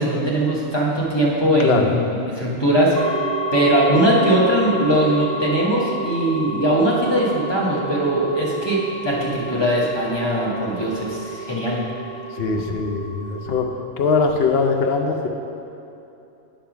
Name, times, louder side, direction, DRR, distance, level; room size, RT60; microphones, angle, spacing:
voice 1, 0.0-3.0 3.5-11.8, right 1 dB, 20° left, -5 dB, 1.2 m, -20 dB
voice 2, 1.6-1.9 12.3-13.7 14.0-15.3, left 4 dB, 60° left, 4 dB, 0.8 m, -21 dB
sound 1, 2.9-13.7, right 2 dB, 55° right, 0.4 m, -30 dB
9.1 x 3.5 x 5.8 m, 2.8 s
omnidirectional pair, 1.3 m